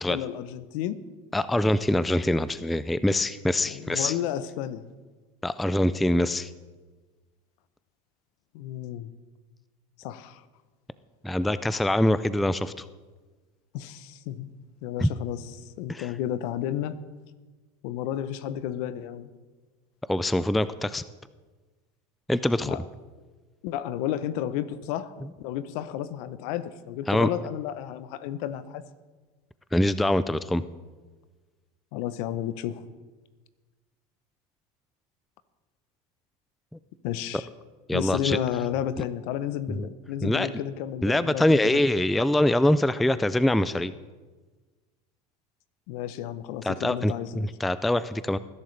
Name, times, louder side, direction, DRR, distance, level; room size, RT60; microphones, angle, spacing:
voice 1, 0.1-1.0 3.6-4.9 8.5-9.1 10.0-10.4 13.7-14.5 14.8-16.9 17.8-19.3 22.6-22.8 23.6-28.8 31.9-32.8 37.0-37.5 37.9-41.9 45.9-47.5, left 11 dB, 70° left, 15 dB, 0.8 m, -32 dB
voice 2, 1.3-4.1 5.4-6.5 11.2-12.9 15.0-15.1 15.9-16.1 20.1-21.0 22.3-22.8 27.1-27.3 29.7-30.6 37.9-38.4 39.7-39.9 40.2-40.5 41.0-43.9 46.6-48.4, left 1 dB, ahead, 15 dB, 0.3 m, -24 dB
20.0 x 11.0 x 3.3 m, 1.3 s
supercardioid pair, 110°, 19 cm